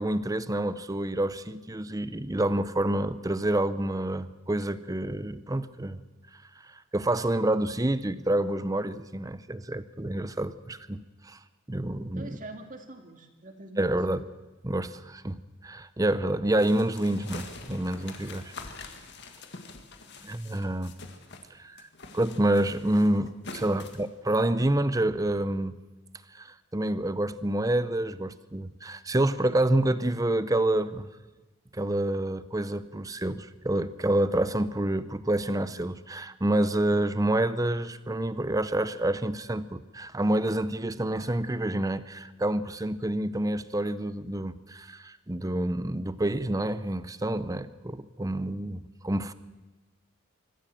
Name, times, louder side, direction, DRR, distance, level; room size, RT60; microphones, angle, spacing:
voice 1, 0.0-6.0 6.3-11.4 11.7-12.4 13.8-14.2 14.6-18.5 20.2-20.9 21.5-21.9 22.1-25.8 26.3-31.1 31.7-49.3, right 1 dB, 15° right, 14 dB, 0.7 m, -28 dB
voice 2, 12.1-14.2, right 2 dB, 40° right, 5 dB, 2.3 m, -45 dB
sound 1, 16.6-21.5 21.8-24.1, left 4 dB, 55° left, 2.0 m, -45 dB
25.0 x 14.5 x 7.6 m, 1.2 s
head